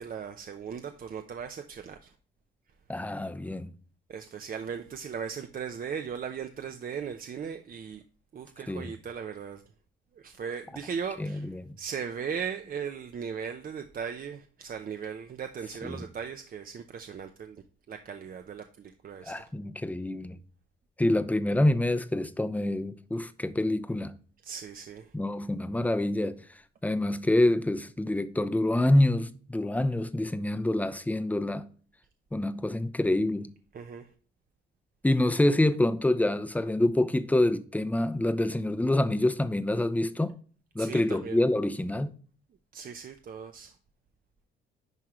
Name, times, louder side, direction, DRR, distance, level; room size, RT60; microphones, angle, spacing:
voice 1, 0.0-2.1 4.1-8.0 8.3-9.6 10.1-19.5 24.4-25.1 33.7-34.1 40.8-41.4 42.7-43.7, right 7 dB, 45° right, 0.7 m, -38 dB
voice 2, 2.9-3.7 8.7-8.9 11.2-11.8 15.8-16.0 19.2-20.4 21.0-24.1 25.1-26.4 26.8-31.7 32.3-33.5 35.0-40.4 40.7-42.1, left 1 dB, 10° left, 0.7 m, -26 dB
10.5 x 3.7 x 3.1 m
cardioid pair, 90°, 20 cm